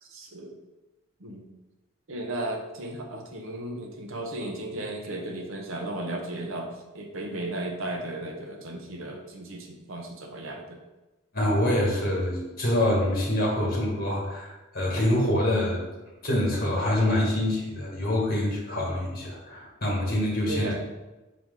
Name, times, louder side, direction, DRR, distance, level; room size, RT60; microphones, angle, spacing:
voice 1, 0.0-0.5 1.2-1.5 2.1-10.8 20.5-20.8, right 1 dB, 65° right, 2 dB, 0.9 m, -35 dB
voice 2, 11.3-15.8 16.2-20.7, left 1 dB, 40° left, -3 dB, 1.8 m, -25 dB
5.9 x 4.7 x 3.8 m, 1.1 s
head